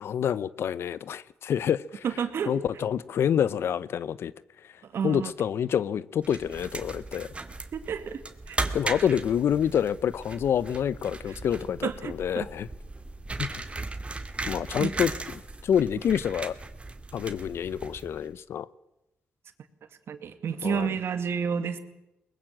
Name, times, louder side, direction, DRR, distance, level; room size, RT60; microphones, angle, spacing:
voice 1, 0.0-2.0 2.5-4.3 5.0-7.3 8.7-12.7 13.4-13.6 14.5-15.1 15.6-16.5 17.1-18.7 20.6-20.9, left 9 dB, 75° left, 0.7 m, -27 dB
voice 2, 2.0-2.5 4.8-5.3 7.7-8.2 8.5-8.6 11.3-11.4 11.8-12.5 14.8-15.0 20.1-21.8, right 7 dB, 75° right, 2.3 m, -30 dB
sound 1, 6.2-18.3, right 3 dB, 25° right, 2.4 m, -37 dB
22.0 x 20.5 x 7.5 m
cardioid pair, 60°, 4 cm